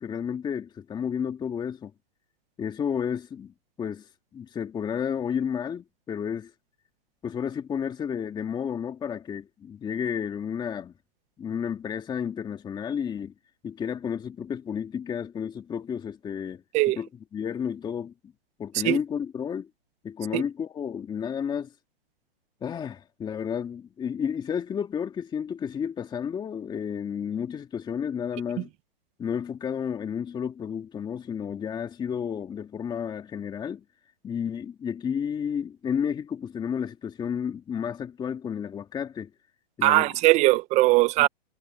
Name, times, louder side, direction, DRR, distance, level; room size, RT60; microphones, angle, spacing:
voice 1, 0.0-1.9 2.6-6.5 7.2-10.9 11.4-13.3 13.6-16.6 17.0-17.1 17.3-18.1 18.6-19.7 20.0-21.7 22.6-28.7 29.2-33.8 34.2-39.3 39.8-40.1 41.2-41.3, left 7 dB, 15° left, 2.0 m, -31 dB
voice 2, 39.8-41.3, right 20 dB, 25° right, 0.7 m, -20 dB
hypercardioid pair, 140°, 30 cm